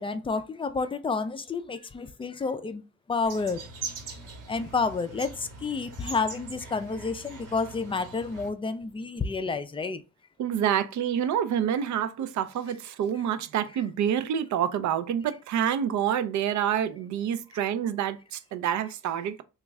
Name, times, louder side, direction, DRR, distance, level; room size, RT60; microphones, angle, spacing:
voice 1, 0.0-2.8 3.1-3.6 4.5-10.0, left 4 dB, 20° left, 0.3 m, -30 dB
sound 1, 3.2-8.5, right 4 dB, 90° right, 1.2 m, -42 dB
voice 2, 10.4-19.4, right 9 dB, 70° right, 0.5 m, -27 dB
3.0 x 2.4 x 3.4 m
cardioid pair, 90°, 30 cm